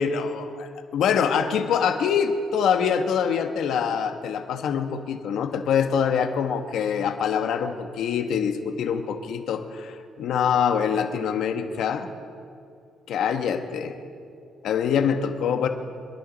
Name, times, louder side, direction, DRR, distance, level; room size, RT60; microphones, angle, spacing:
voice 1, 0.0-12.1 13.1-13.9 14.6-15.7, left 7 dB, 75° left, 6 dB, 1.2 m, -25 dB
27.0 x 11.0 x 4.0 m, 2.4 s
cardioid pair, 90°, 0 cm